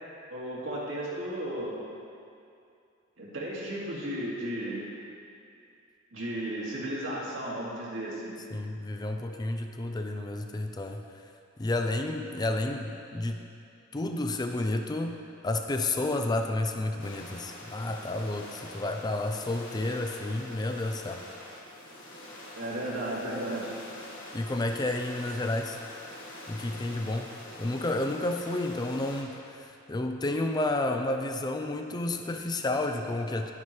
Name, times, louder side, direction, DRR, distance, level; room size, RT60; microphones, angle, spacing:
voice 1, 0.3-1.8 3.2-4.8 6.1-8.3 22.6-23.7, right 1 dB, 80° right, -6 dB, 2.3 m, -34 dB
voice 2, 8.5-11.0 11.6-13.4 13.9-21.2 24.3-25.8 26.5-27.3 27.6-33.5, left 2 dB, 20° left, 5 dB, 0.4 m, -31 dB
sound 1, 17.0-29.2, left 1 dB, 80° left, 1.6 m, -45 dB
10.5 x 9.6 x 3.2 m, 2.5 s
head